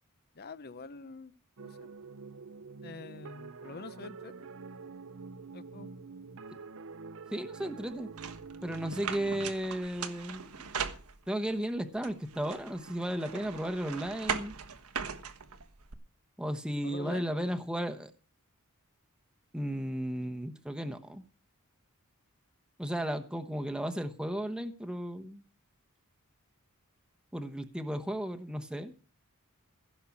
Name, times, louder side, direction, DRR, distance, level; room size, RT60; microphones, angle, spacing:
voice 1, 0.3-1.3 1.6-1.9 2.8-4.5 5.5-5.9 16.8-17.5, left 4 dB, 45° left, 16 dB, 0.8 m, -46 dB
sound 1, 1.6-10.8, right 4 dB, 60° right, 0.7 m, -47 dB
voice 2, 7.3-8.1 8.6-10.7 11.3-14.5 16.4-18.1 19.5-21.2 22.8-25.4 27.3-28.9, equal, 5° right, 6 dB, 1.0 m, -34 dB
sound 2, 8.2-11.5 12.0-15.9, right 6 dB, 90° right, 1.4 m, -39 dB
15.5 x 6.4 x 7.2 m, 0.36 s
head